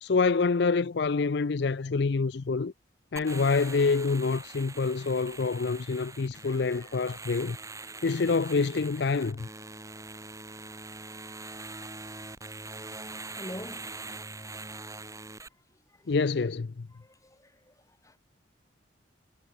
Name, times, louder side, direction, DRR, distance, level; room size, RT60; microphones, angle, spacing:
voice 1, 0.0-2.7 3.1-7.6 8.0-9.5 16.1-16.9, left 4 dB, 60° left, 0.5 m, -27 dB
sound 1, 3.2-15.5, right 3 dB, 15° right, 3.6 m, -43 dB
voice 2, 6.4-6.8 11.8-11.9 13.3-13.9 17.0-17.5 18.0-18.1, equal, 15° left, 3.1 m, -44 dB
head